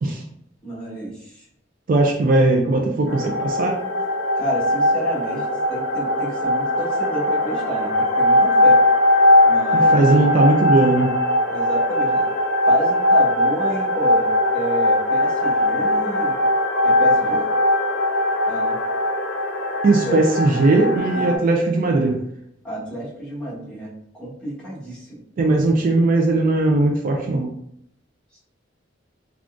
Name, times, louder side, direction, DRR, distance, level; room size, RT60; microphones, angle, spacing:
voice 1, 0.6-1.4 4.3-8.8 9.4-10.0 11.5-12.3 12.6-16.3 16.8-17.5 18.5-18.8 20.1-20.2 21.1-21.3 22.6-25.2 28.3-28.4, equal, 5° left, -9 dB, 1.2 m, -30 dB
voice 2, 1.9-3.8 9.7-11.2 19.8-22.2 25.4-27.6, right 2 dB, 45° right, 2 dB, 0.3 m, -18 dB
sound 1, 3.1-21.4, left 1 dB, 80° left, 0.6 m, -19 dB
3.7 x 2.3 x 2.4 m, 0.73 s
head